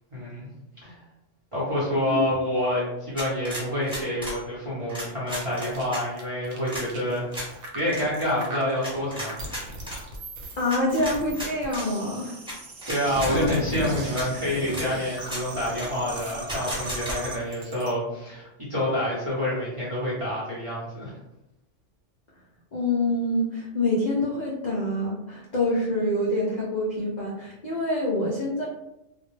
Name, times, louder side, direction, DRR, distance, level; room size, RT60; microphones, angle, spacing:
voice 1, 0.1-0.5 0.8-0.9 1.5-9.5 12.9-21.1, left 1 dB, 30° right, -8 dB, 0.6 m, -28 dB
sound 1, 3.2-4.4 4.9-6.0 6.7-6.9 7.3-7.5 7.9-8.0 8.8-10.0 10.7-11.9 12.5-12.6 12.8-13.6 14.2-14.3 14.7-14.9 15.2-15.4 15.8-15.9 16.5-17.2, equal, 5° right, 0.9 m, -34 dB
sound 2, 5.3-17.9, equal, 70° right, 0.9 m, -37 dB
voice 2, 10.6-12.4 13.1-13.4 22.7-28.7, left 1 dB, 55° left, -5 dB, 0.5 m, -26 dB
2.2 x 2.1 x 3.0 m, 0.90 s
omnidirectional pair, 1.3 m